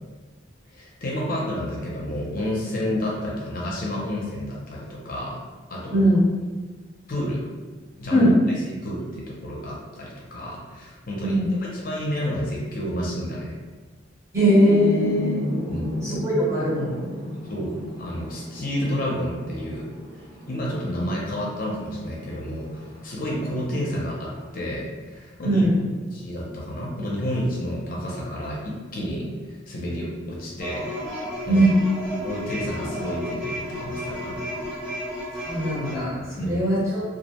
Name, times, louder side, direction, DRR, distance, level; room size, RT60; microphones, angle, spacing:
voice 1, 0.7-5.4 5.7-6.1 7.1-7.4 8.0-8.3 8.7-13.5 15.7-16.0 17.5-19.9 20.5-25.6 26.1-30.9 31.4-31.7 32.2-34.5 36.4-36.7, equal, 45° left, -4 dB, 0.5 m, -30 dB
voice 2, 14.3-15.4 16.0-17.0 25.4-25.9 31.5-31.7 35.3-37.0, equal, 15° right, -8 dB, 0.7 m, -21 dB
sound 1, 14.4-24.5, equal, 75° right, 0.7 m, -34 dB
sound 2, 30.6-35.9, equal, 50° right, 1.1 m, -32 dB
2.3 x 2.0 x 2.8 m, 1.3 s
head